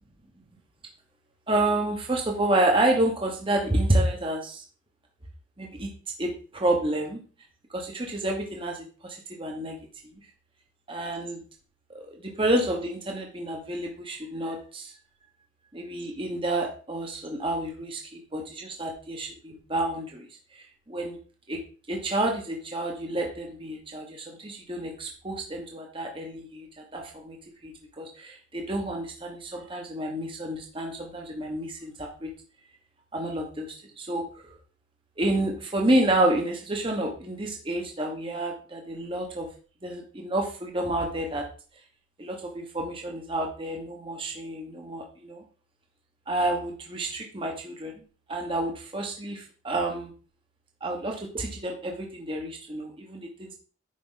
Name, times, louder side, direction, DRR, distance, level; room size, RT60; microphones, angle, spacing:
voice 1, 1.5-4.6 5.6-5.9 6.2-7.2 7.7-9.8 10.9-11.4 11.9-14.9 15.7-20.3 20.9-21.2 21.5-21.6 21.9-27.4 27.6-32.3 33.1-33.7 34.0-34.5 35.2-39.5 39.8-41.5 42.2-45.4 46.3-47.9 48.3-50.1 50.8-53.5, right 1 dB, 25° right, 1 dB, 1.1 m, -29 dB
10.5 x 4.7 x 3.9 m, 0.38 s
head